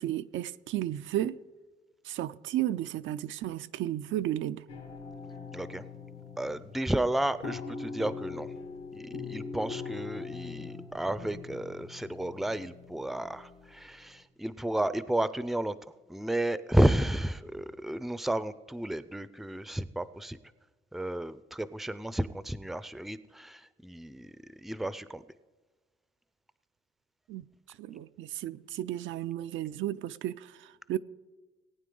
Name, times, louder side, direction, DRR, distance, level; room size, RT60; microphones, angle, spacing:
voice 1, 0.0-1.4 2.0-4.6 27.3-27.5 27.8-31.0, right 13 dB, 75° right, 0.4 m, -33 dB
sound 1, 4.7-13.7, left 5 dB, 80° left, 2.2 m, -42 dB
voice 2, 5.5-5.8 6.4-8.5 8.9-20.4 20.9-25.2, right 1 dB, ahead, 0.4 m, -32 dB
18.5 x 9.0 x 3.8 m
cardioid pair, 90°, 20 cm